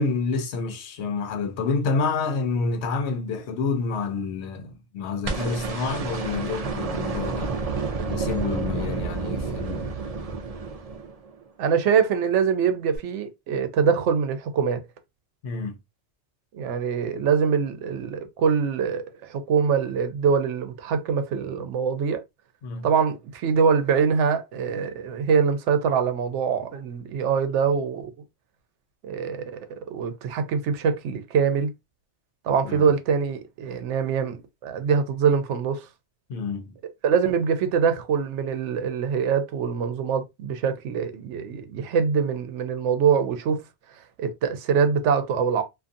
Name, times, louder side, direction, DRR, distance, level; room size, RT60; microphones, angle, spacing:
voice 1, 0.0-7.5 8.1-10.0 15.4-15.8 22.6-22.9 26.7-26.8 32.6-32.9 36.3-36.8, left 4 dB, 75° left, 0.9 m, -28 dB
sound 1, 5.2-11.4 13.0-13.1, right 4 dB, 50° right, 0.4 m, -30 dB
voice 2, 11.6-14.8 16.5-22.2 22.8-28.1 29.0-31.7 32.4-35.9 37.0-43.6 44.2-45.6, right 6 dB, 90° right, 0.9 m, -24 dB
2.5 x 2.5 x 2.5 m
omnidirectional pair, 1.2 m